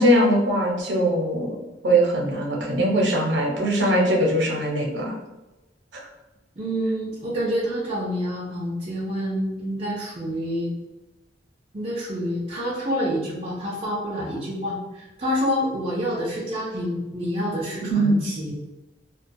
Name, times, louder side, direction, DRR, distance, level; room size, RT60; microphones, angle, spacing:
voice 1, 0.0-1.6 1.8-5.1 17.9-18.2, right 1 dB, 75° right, -2 dB, 0.7 m, -21 dB
voice 2, 6.6-10.7 11.7-18.5, equal, 35° right, -7 dB, 0.5 m, -27 dB
2.2 x 2.2 x 2.6 m, 1.0 s
head